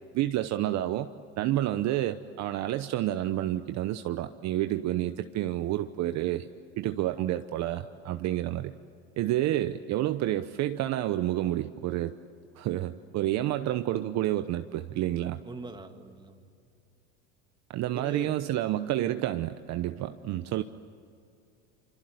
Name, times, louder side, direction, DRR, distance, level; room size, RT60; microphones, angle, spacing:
voice 1, 0.1-1.1 1.4-6.5 6.8-8.7 9.2-12.1 12.6-15.4 17.7-20.6, right 13 dB, 50° right, 9 dB, 1.0 m, -29 dB
voice 2, 15.4-16.4 17.9-18.3, right 3 dB, 15° right, 5 dB, 2.4 m, -42 dB
26.0 x 25.0 x 8.1 m, 2.5 s
supercardioid pair, 110°, 35 cm